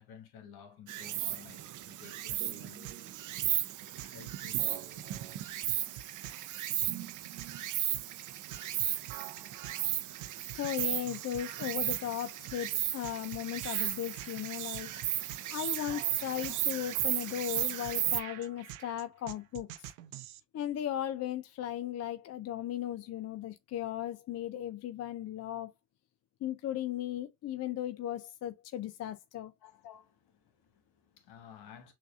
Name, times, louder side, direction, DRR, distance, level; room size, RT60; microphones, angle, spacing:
voice 1, 0.0-2.9 3.6-5.1 5.6-5.9 29.6-31.9, left 7 dB, 60° left, 1.3 m, -54 dB
Insect, 0.9-18.2, right 13 dB, 45° right, 0.6 m, -35 dB
sound 1, 2.3-20.4, right 14 dB, 85° right, 0.5 m, -47 dB
voice 2, 10.5-14.9 15.5-19.9 20.5-25.7 26.4-29.5, left 11 dB, 40° left, 0.5 m, -36 dB
6.3 x 2.5 x 2.4 m
hypercardioid pair, 65°, 42 cm